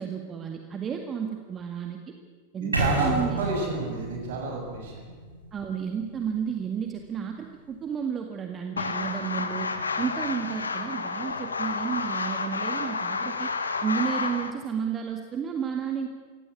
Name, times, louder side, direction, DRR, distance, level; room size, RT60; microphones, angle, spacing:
voice 1, 0.0-2.1 2.5-3.4 5.5-9.7 10.0-13.5 13.8-16.1, right 7 dB, 25° right, 4 dB, 1.9 m, -32 dB
voice 2, 2.6-5.0, right 3 dB, 55° right, 1 dB, 7.2 m, -30 dB
sound 1, 2.7-6.7, right 2 dB, 80° right, 5.4 m, -31 dB
sound 2, 8.8-14.5, left 4 dB, 75° left, 1.7 m, -30 dB
24.0 x 17.0 x 8.5 m, 1.5 s
figure-of-eight pair, 90°, 0 cm